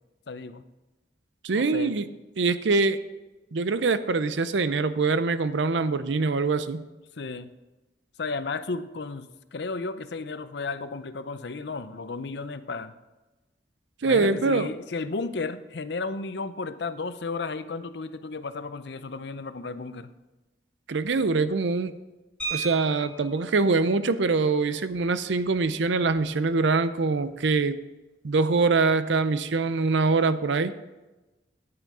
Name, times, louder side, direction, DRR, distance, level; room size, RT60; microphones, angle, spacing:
voice 1, 0.3-0.6 1.5-2.0 7.2-7.5 8.2-12.9 14.0-20.1, left 4 dB, 65° left, 12 dB, 0.6 m, -33 dB
voice 2, 1.4-2.1 2.4-3.0 3.5-6.8 14.0-14.7 20.9-21.9 22.5-27.8 28.2-30.7, right 3 dB, 75° right, 13 dB, 0.6 m, -24 dB
sound 1, 22.4-23.5 24.9-25.0 25.4-25.6 26.0-26.2, right 4 dB, 5° left, 3.4 m, -35 dB
9.6 x 9.1 x 4.8 m, 1.1 s
head